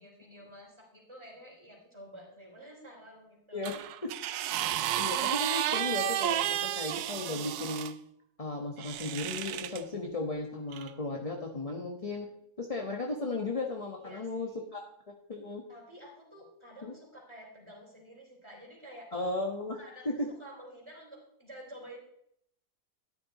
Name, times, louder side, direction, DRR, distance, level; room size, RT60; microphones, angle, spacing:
voice 1, 0.0-3.8 12.6-12.7 14.0-14.9 15.7-19.1 19.8-22.0, equal, 15° right, -2 dB, 3.2 m, -50 dB
voice 2, 3.5-4.1 5.0-7.9 8.4-12.3 12.6-14.8 15.3-15.6 16.8-16.9 19.1-19.8 20.0-20.3, left 2 dB, 25° left, 1 dB, 1.0 m, -35 dB
sound 1, 3.6-7.9 8.8-9.8 10.7-10.9, right 12 dB, 75° right, 1.1 m, -32 dB
13.0 x 10.0 x 4.1 m, 0.74 s
omnidirectional pair, 1.7 m